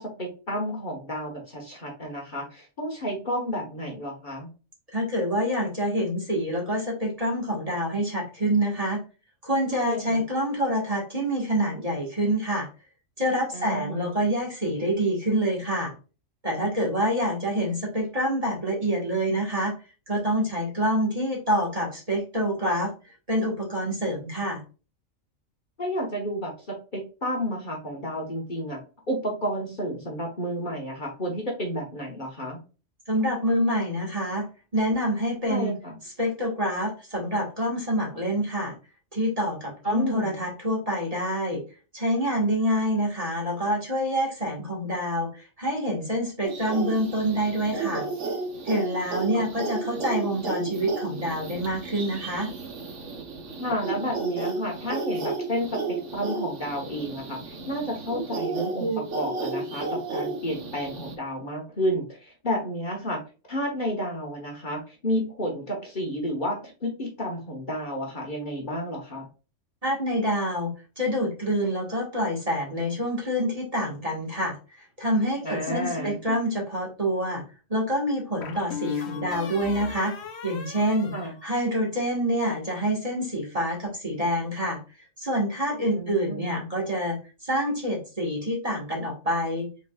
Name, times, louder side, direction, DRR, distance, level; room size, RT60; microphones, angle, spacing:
voice 1, 0.0-4.5 9.7-10.2 13.5-14.2 25.8-28.8 29.1-32.6 35.5-36.0 39.8-40.4 49.3-49.4 49.9-50.0 53.6-63.2 63.5-69.2 75.4-76.2 81.1-81.3 85.9-86.7, equal, 40° left, -1 dB, 1.3 m, -31 dB
voice 2, 4.9-9.0 9.4-12.7 13.2-15.9 16.4-19.7 20.1-22.9 23.3-24.6 33.1-34.5 34.7-35.7 36.2-38.7 39.1-41.6 41.9-48.0 48.6-52.5 69.8-77.4 77.7-80.1 80.4-81.1 81.4-84.8 85.2-89.7, equal, 30° right, -2 dB, 1.6 m, -26 dB
sound 1, 46.4-61.2, right 3 dB, 70° right, 1.3 m, -32 dB
sound 2, 75.7-76.5 78.4-82.0, left 7 dB, 60° left, 1.0 m, -38 dB
5.2 x 4.0 x 2.3 m, 0.33 s
omnidirectional pair, 1.3 m